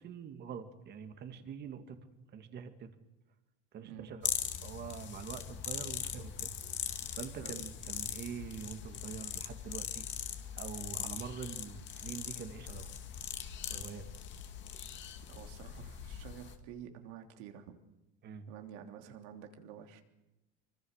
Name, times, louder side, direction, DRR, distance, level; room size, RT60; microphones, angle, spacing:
voice 1, 0.0-2.9 3.7-4.2 4.6-6.5 7.1-10.1 10.6-12.9 13.7-14.0 18.2-18.5, right 7 dB, 35° right, 8 dB, 2.2 m, -45 dB
sound 1, 4.2-16.5, left 9 dB, 40° left, 2.2 m, -41 dB
voice 2, 15.3-17.8 18.5-20.0, right 9 dB, 80° right, 5 dB, 3.2 m, -49 dB
25.5 x 24.5 x 6.6 m, 0.98 s
cardioid pair, 155°, 29 cm